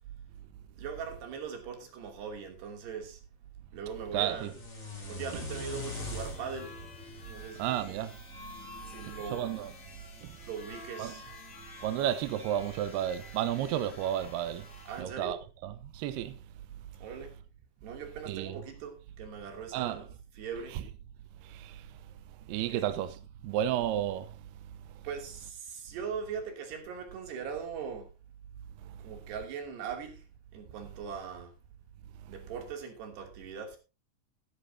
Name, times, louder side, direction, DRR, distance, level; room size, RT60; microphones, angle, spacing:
voice 1, 0.7-3.2 3.7-4.5 5.1-6.8 7.3-7.9 8.9-9.5 10.5-11.2 14.9-15.4 17.0-17.4 17.8-20.0 20.4-20.8 22.7-22.8 25.0-28.1 29.0-30.3 30.5-31.5 32.3-33.8, right 6 dB, 60° right, 4.7 m, -40 dB
voice 2, 4.1-4.5 7.6-8.2 8.6-8.7 9.0-9.7 10.2-10.4 11.0-11.2 11.8-16.4 18.3-18.6 19.7-20.0 20.7-20.8 21.4-22.0 22.4-23.1 23.4-24.4 24.9-25.0 28.8-29.0 32.2-32.3, right 11 dB, 75° right, 2.4 m, -33 dB
sound 1, 4.4-8.5, left 2 dB, 15° left, 3.7 m, -42 dB
sound 2, 5.4-15.0, left 3 dB, 35° left, 1.4 m, -50 dB
15.0 x 13.0 x 2.8 m
omnidirectional pair, 5.5 m